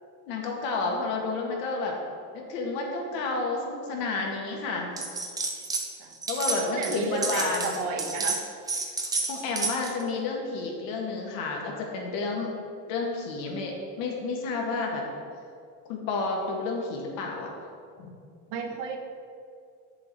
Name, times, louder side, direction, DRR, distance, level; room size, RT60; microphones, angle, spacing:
voice 1, 0.3-2.0 2.3-4.9 6.3-7.8 9.3-12.5 12.9-15.0 15.9-17.5 18.0-18.1, left 3 dB, 60° left, 0 dB, 1.9 m, -30 dB
sound 1, 5.0-5.9 6.1-10.0, right 3 dB, 10° right, 0.5 m, -30 dB
voice 2, 6.7-8.4 18.5-19.0, right 5 dB, 60° right, 3 dB, 1.2 m, -32 dB
8.6 x 6.9 x 4.7 m, 2.3 s
cardioid pair, 165°, 38 cm